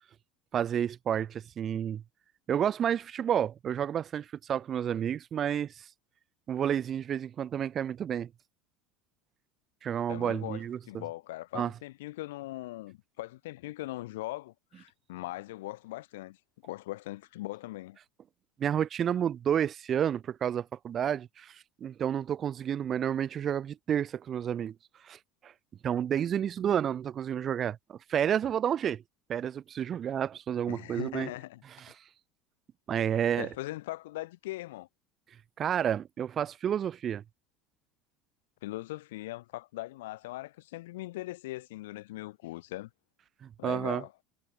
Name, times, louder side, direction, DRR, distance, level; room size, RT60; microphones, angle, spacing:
voice 1, 0.5-2.0 2.5-5.7 6.5-8.3 9.8-11.0 11.5-11.7 18.6-21.5 21.8-24.7 25.1-25.2 25.4-25.5 25.8-29.0 29.3-31.3 31.8-31.9 32.9-33.5 35.6-37.2 43.4-44.0, right 9 dB, 40° right, 1.3 m, -30 dB
voice 2, 10.1-16.4 16.6-18.0 30.7-31.6 33.4-34.9 38.6-42.9 43.6-44.1, left 18 dB, 75° left, 3.1 m, -40 dB
hypercardioid pair, 80°, 0 cm